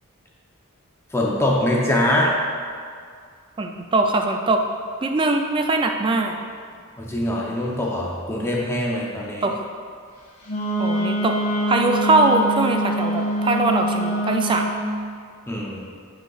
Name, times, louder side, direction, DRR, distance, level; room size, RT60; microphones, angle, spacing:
voice 1, 1.1-2.4 7.0-9.5 15.5-15.8, left 1 dB, 10° left, -3 dB, 0.7 m, -23 dB
voice 2, 3.6-4.6 5.0-6.4 9.4-9.6 10.8-11.3 11.7-14.7, right 2 dB, 25° right, 4 dB, 0.3 m, -21 dB
Wind instrument woodwind instrument, 10.5-14.9, right 1 dB, 35° left, 1.6 m, -24 dB
8.8 x 5.2 x 2.4 m, 2.2 s
head